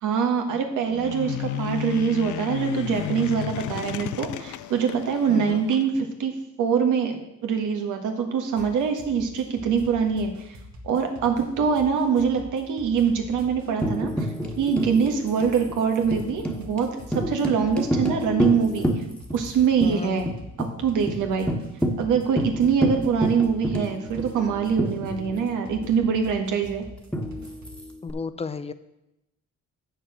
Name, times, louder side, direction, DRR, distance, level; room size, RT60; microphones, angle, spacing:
voice 1, 0.0-6.3 6.6-10.6 10.8-14.3 14.6-16.9 17.1-18.9 19.3-20.3 20.8-21.5 22.0-26.8, right 6 dB, 85° right, 4 dB, 1.5 m, -24 dB
sound 1, 0.9-5.9, left 13 dB, 75° left, 0.5 m, -33 dB
voice 2, 5.3-5.6 19.8-20.1 28.0-28.7, left 4 dB, 20° left, 12 dB, 0.6 m, -33 dB
sound 2, 8.6-27.8, left 1 dB, 65° right, 1.7 m, -44 dB
Tambourine, 13.8-19.5 19.8-19.9 20.3-20.7 21.1-21.2 21.5-25.6 27.1-28.1, equal, 5° left, 1.4 m, -29 dB
7.7 x 6.6 x 6.2 m, 0.90 s
cardioid pair, 90°, 30 cm